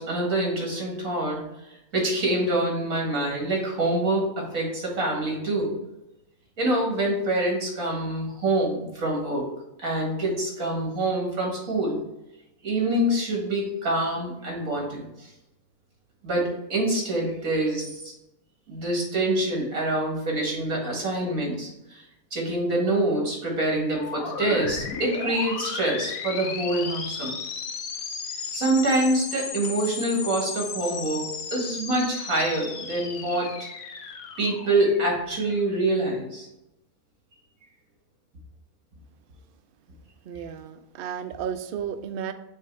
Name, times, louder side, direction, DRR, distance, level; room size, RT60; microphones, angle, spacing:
voice 1, 0.0-1.4 1.7-5.7 6.6-9.5 9.8-12.0 12.6-15.3 16.2-18.1 18.7-22.0 22.3-27.4 28.5-33.5 34.4-36.5, right 1 dB, 70° right, -1 dB, 2.3 m, -26 dB
sound 1, 23.9-35.6, left 5 dB, 70° left, 1.2 m, -35 dB
voice 2, 40.2-42.3, right 8 dB, 85° right, 9 dB, 0.5 m, -33 dB
6.6 x 3.1 x 4.6 m, 0.89 s
omnidirectional pair, 1.5 m